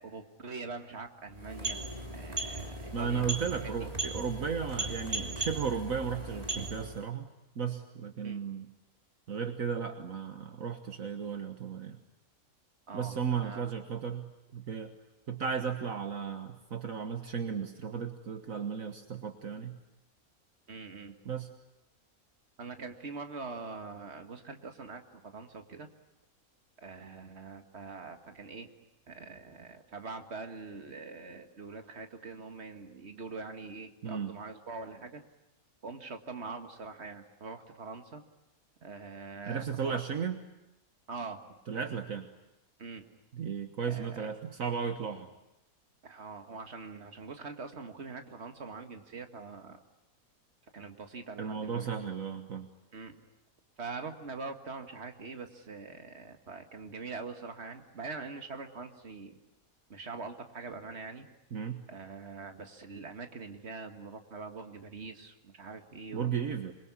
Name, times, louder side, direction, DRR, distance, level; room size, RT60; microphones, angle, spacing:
voice 1, 0.0-1.8 2.1-3.9 8.2-8.4 12.9-13.7 20.7-21.1 22.6-25.9 26.8-28.7 29.1-35.2 35.8-38.2 38.8-40.0 41.1-41.4 42.8-43.1 43.9-44.3 46.0-49.8 50.7-51.9 52.9-53.2 53.8-59.4 59.9-61.3 61.9-66.4, right 4 dB, 45° right, 6 dB, 2.2 m, -43 dB
sound 1, 1.3-7.1, right 2 dB, 25° right, 3.0 m, -37 dB
voice 2, 2.9-7.3 7.5-8.7 9.3-12.0 12.9-14.9 15.3-19.8 21.2-21.5 34.0-34.3 39.5-40.4 41.7-42.3 43.3-45.3 51.4-52.7 61.5-61.9 66.1-66.7, right 6 dB, 65° right, 7 dB, 1.7 m, -35 dB
27.0 x 23.0 x 9.7 m, 0.90 s
omnidirectional pair, 1.5 m